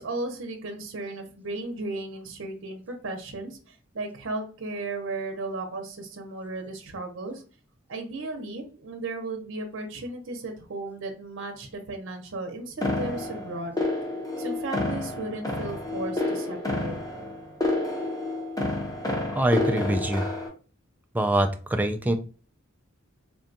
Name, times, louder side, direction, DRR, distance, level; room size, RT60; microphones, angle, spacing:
voice 1, 0.0-7.4 7.9-13.8 14.4-16.9, right 2 dB, 65° right, 4 dB, 0.7 m, -35 dB
sound 1, 12.8-20.5, left 2 dB, 20° left, 0.7 m, -29 dB
voice 2, 19.3-20.3 21.1-22.1, right 1 dB, 10° right, 6 dB, 0.3 m, -24 dB
3.5 x 2.3 x 2.6 m, 0.38 s
head